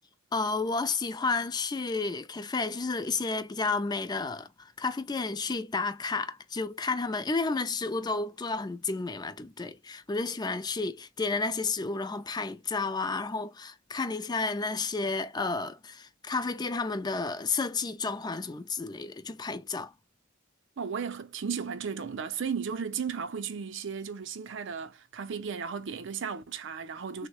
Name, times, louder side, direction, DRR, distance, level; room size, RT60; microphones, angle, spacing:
voice 1, 0.3-19.9 27.2-27.3, left 3 dB, 20° left, 0.4 m, -31 dB
voice 2, 20.8-27.3, right 6 dB, 65° right, 0.5 m, -35 dB
3.5 x 2.1 x 2.9 m
head